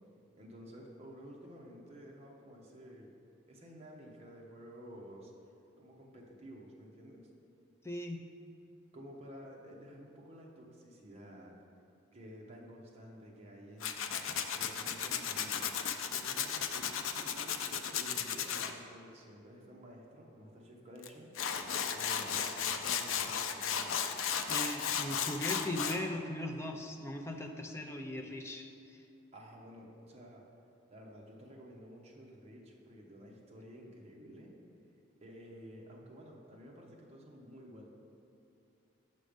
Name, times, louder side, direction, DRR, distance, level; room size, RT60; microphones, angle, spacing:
voice 1, 0.4-3.1 3.5-5.3 5.8-7.2 8.9-11.6 12.1-14.0 14.5-15.7 16.0-21.5 21.8-24.1 29.3-30.4 30.9-34.5 35.2-37.9, equal, 30° right, -1 dB, 0.9 m, -52 dB
voice 2, 7.8-8.2 24.5-29.0, left 1 dB, 15° left, 3 dB, 0.4 m, -39 dB
Tools, 13.8-18.7 21.0-21.1 21.3-26.0, left 7 dB, 90° left, 0.5 m, -35 dB
6.4 x 5.2 x 5.1 m, 2.7 s
head